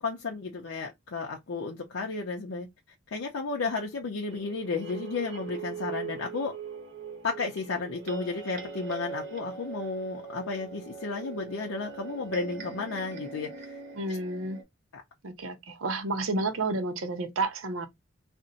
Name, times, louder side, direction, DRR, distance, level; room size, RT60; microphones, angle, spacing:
voice 1, 0.0-2.7 3.1-6.5 7.2-13.8 14.1-14.2 14.9-15.0, left 4 dB, 80° left, 0.6 m, -33 dB
sound 1, 4.3-14.6, right 5 dB, 55° right, 1.1 m, -41 dB
voice 2, 14.0-14.6 15.2-17.9, right 2 dB, 85° right, 0.7 m, -31 dB
2.6 x 2.1 x 3.8 m
head